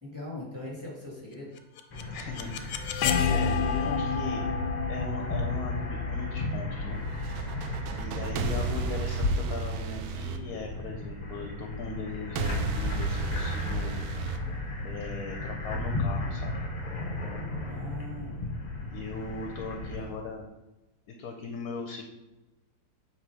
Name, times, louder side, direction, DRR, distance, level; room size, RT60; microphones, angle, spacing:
voice 1, 0.0-1.5 17.6-18.4 19.9-20.2, left 1 dB, 10° right, -6 dB, 2.1 m, -40 dB
sound 1, 1.6-7.4, left 6 dB, 85° left, 1.3 m, -30 dB
sound 2, 1.9-20.0, left 2 dB, 40° left, 0.6 m, -34 dB
voice 2, 2.1-7.0 8.0-13.9 14.8-16.5 18.9-20.4 21.1-22.0, left 3 dB, 65° left, 3 dB, 1.1 m, -39 dB
sound 3, 7.1-11.2 12.4-15.2, right 5 dB, 70° right, 0.9 m, -34 dB
7.7 x 3.3 x 4.8 m, 1.0 s
omnidirectional pair, 1.9 m